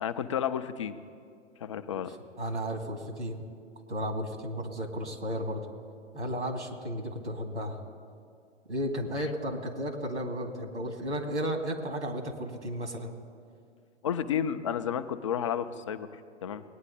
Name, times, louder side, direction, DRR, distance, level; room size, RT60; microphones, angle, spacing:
voice 1, 0.0-1.0 1.6-2.1 14.0-16.6, left 8 dB, 30° left, 10 dB, 0.4 m, -32 dB
voice 2, 2.1-3.4 3.9-5.6 6.1-7.8 8.7-13.1, equal, 75° right, 3 dB, 2.3 m, -34 dB
21.0 x 9.5 x 4.1 m, 2.3 s
figure-of-eight pair, 120°, 35 cm